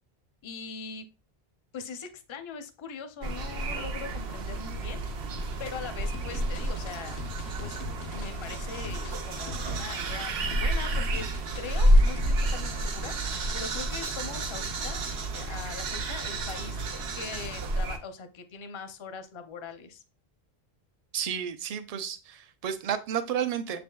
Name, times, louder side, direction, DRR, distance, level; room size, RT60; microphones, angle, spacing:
voice 1, 0.4-1.1 1.7-5.0 5.6-7.2 7.6-7.8 8.1-11.3 11.6-15.1 15.3-16.8 17.1-20.0 23.7-23.8, left 5 dB, 40° left, 0.4 m, -41 dB
sound 1, 3.2-18.0, right 1 dB, 85° right, 0.9 m, -29 dB
sound 2, 6.1-12.8, left 8 dB, 90° left, 0.9 m, -44 dB
voice 2, 21.1-23.8, right 8 dB, 55° right, 0.4 m, -31 dB
6.8 x 3.4 x 2.2 m
omnidirectional pair, 1.1 m